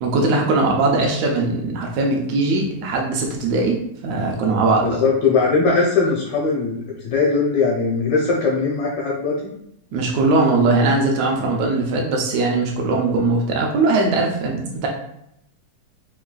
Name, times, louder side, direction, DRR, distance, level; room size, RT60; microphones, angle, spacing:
voice 1, 0.0-5.0 9.9-14.9, right 3 dB, 85° right, 0 dB, 1.5 m, -20 dB
voice 2, 4.8-9.5, left 4 dB, 85° left, -3 dB, 1.5 m, -20 dB
5.6 x 2.4 x 2.2 m, 0.77 s
omnidirectional pair, 3.7 m